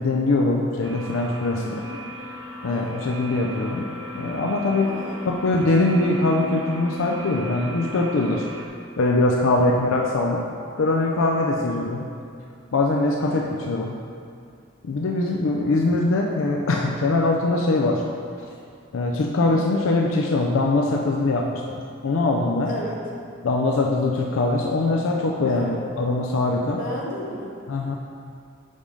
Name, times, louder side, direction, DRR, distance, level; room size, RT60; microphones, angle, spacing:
voice 1, 0.0-1.6 2.6-3.9 4.1-5.0 5.3-8.4 9.0-10.5 10.8-12.1 12.7-14.0 14.8-18.0 18.4-18.5 18.9-22.7 23.4-26.8 27.7-28.0, left 2 dB, 80° left, 0 dB, 0.5 m, -22 dB
sound 1, 0.8-8.7, equal, 70° right, 0.8 m, -37 dB
voice 2, 1.5-2.0 2.7-3.1 4.8-5.3 9.5-9.8 11.6-11.9 13.2-13.6 19.4-19.6 22.7-23.0 24.3-24.4 25.5-25.8 26.8-27.5, left 1 dB, 40° left, -4 dB, 1.1 m, -35 dB
5.2 x 5.1 x 5.3 m, 2.4 s
head